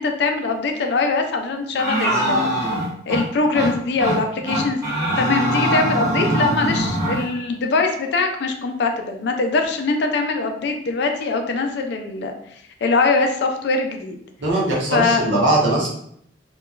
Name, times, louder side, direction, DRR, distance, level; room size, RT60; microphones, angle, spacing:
voice 1, 0.0-2.7 3.1-12.3 12.8-14.2 14.9-15.2, left 3 dB, 65° left, 4 dB, 0.4 m, -22 dB
Angry Ram, 1.8-3.2 3.5-3.7 4.0-4.2 4.5-7.2, right 1 dB, 20° right, 0.8 m, -22 dB
voice 2, 14.4-15.9, right 1 dB, 85° right, -4 dB, 0.9 m, -20 dB
2.8 x 2.2 x 2.4 m, 0.68 s
head